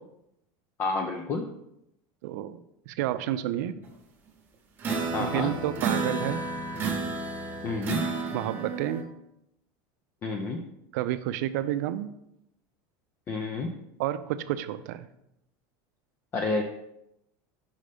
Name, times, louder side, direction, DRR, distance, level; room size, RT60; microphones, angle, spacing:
voice 1, 0.8-1.5 5.1-5.5 7.6-8.0 10.2-10.6 13.3-13.7 16.3-16.6, left 3 dB, 25° left, 3 dB, 0.4 m, -29 dB
voice 2, 2.2-2.6 2.9-3.8 5.2-6.4 8.3-9.0 10.9-12.1 14.0-15.1, right 12 dB, 75° right, 13 dB, 0.4 m, -30 dB
sound 1, 4.8-9.0, right 4 dB, 20° right, 0.8 m, -31 dB
5.4 x 5.1 x 3.4 m, 0.82 s
cardioid pair, 170°, 9 cm